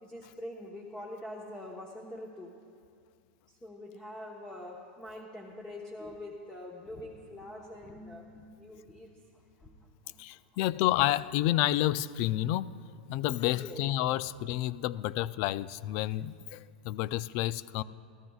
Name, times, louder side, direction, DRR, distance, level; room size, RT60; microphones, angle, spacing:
voice 1, 0.0-2.5 3.6-9.1 9.6-9.7 10.0-10.1 13.5-13.8, left 1 dB, 10° left, 1.1 m, -44 dB
voice 2, 10.2-12.8 13.1-17.8, left 14 dB, 50° left, 0.4 m, -30 dB
29.5 x 13.5 x 2.4 m
supercardioid pair, 135°, 5 cm